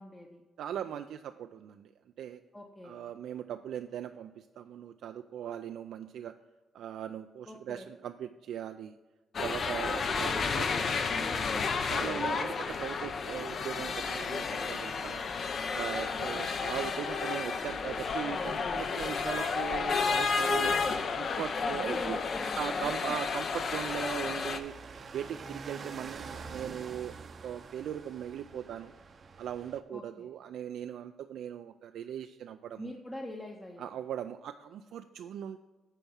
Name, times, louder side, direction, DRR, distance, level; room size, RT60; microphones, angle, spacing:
voice 1, 0.0-0.4 2.5-3.0 7.5-7.9 10.1-12.1 16.3-16.5 21.5-23.1 29.9-30.3 32.8-33.9, left 1 dB, 15° left, 1 dB, 0.8 m, -43 dB
voice 2, 0.6-1.9 2.2-2.4 2.8-6.3 6.7-9.0 9.4-10.7 11.9-15.2 15.7-20.7 21.1-22.2 22.6-24.7 25.1-27.2 27.4-28.9 29.4-32.9 33.8-35.6, right 10 dB, 80° right, 7 dB, 0.3 m, -39 dB
sound 1, 9.3-24.6, left 5 dB, 50° left, 0.7 m, -32 dB
sound 2, 24.4-29.8, right 4 dB, 45° right, 0.6 m, -46 dB
9.0 x 4.6 x 5.5 m, 1.2 s
cardioid pair, 100°, 0 cm